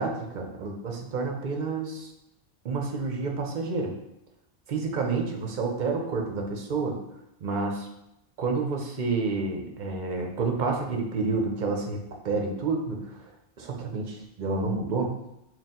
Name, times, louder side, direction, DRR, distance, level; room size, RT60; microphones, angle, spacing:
voice 1, 0.0-2.1 2.6-3.9 4.7-7.0 7.4-7.9 8.4-13.3 13.6-15.1, right 4 dB, 55° right, 2 dB, 0.7 m, -29 dB
4.3 x 2.3 x 3.7 m, 0.86 s
omnidirectional pair, 1.0 m